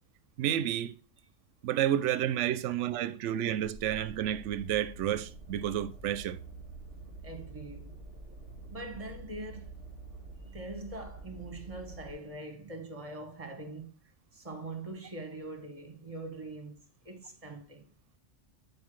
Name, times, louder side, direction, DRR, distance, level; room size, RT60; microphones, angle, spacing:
voice 1, 0.4-1.0 1.6-6.4, right 11 dB, 75° right, 0.9 m, -30 dB
sound 1, 3.6-12.1, right 3 dB, 70° left, 2.2 m, -47 dB
voice 2, 7.2-8.0 8.7-9.7 10.4-13.9 14.3-17.8, right 2 dB, 30° right, 1.2 m, -43 dB
9.4 x 4.7 x 3.1 m
omnidirectional pair, 1.3 m